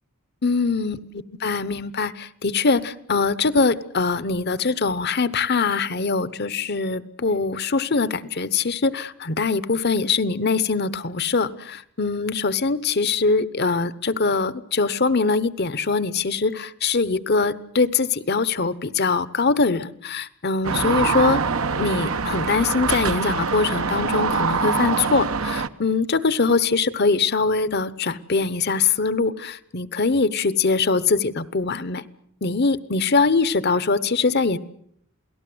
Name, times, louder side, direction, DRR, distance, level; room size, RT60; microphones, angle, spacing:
voice 1, 0.4-21.4 21.8-32.0 32.4-34.6, left 4 dB, 45° left, 16 dB, 0.9 m, -22 dB
sound 1, 20.6-25.7, right 5 dB, 70° right, 1.0 m, -24 dB
28.5 x 18.5 x 7.8 m, 0.69 s
head